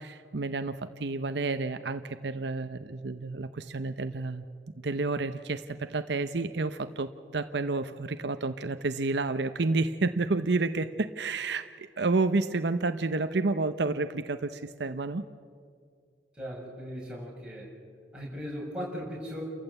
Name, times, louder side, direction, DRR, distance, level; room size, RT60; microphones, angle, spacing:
voice 1, 0.0-15.2, right 3 dB, 70° right, 10 dB, 0.7 m, -30 dB
voice 2, 16.3-17.7 18.1-19.4, equal, 5° right, -5 dB, 6.1 m, -38 dB
29.5 x 14.5 x 8.1 m, 2.2 s
head